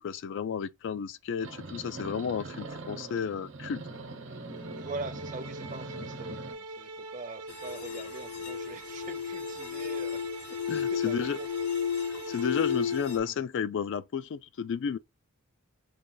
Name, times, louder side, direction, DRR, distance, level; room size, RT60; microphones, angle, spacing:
voice 1, 0.0-3.8 10.7-11.4 12.3-15.0, left 7 dB, 55° left, 0.3 m, -32 dB
sound 1, 1.4-6.5, right 2 dB, 60° right, 1.0 m, -42 dB
sound 2, 4.5-13.3, right 2 dB, 80° right, 0.8 m, -43 dB
voice 2, 4.8-11.5, right 3 dB, 35° right, 0.6 m, -43 dB
sound 3, 7.5-13.2, left 8 dB, 75° left, 0.8 m, -33 dB
5.0 x 2.3 x 3.8 m
head